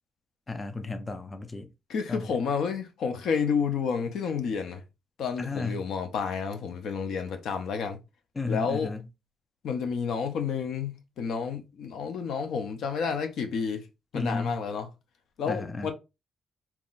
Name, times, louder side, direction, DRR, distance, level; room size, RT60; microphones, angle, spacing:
voice 1, 0.5-1.7 2.1-2.3 5.4-5.8 8.4-9.0 14.1-14.6 15.5-15.9, left 3 dB, 25° left, 0.5 m, -33 dB
voice 2, 1.9-4.8 5.2-8.0 8.5-8.9 9.6-13.8 14.1-14.9 15.4-15.9, left 6 dB, 75° left, 0.7 m, -30 dB
3.8 x 2.9 x 2.4 m
cardioid pair, 90°, 0 cm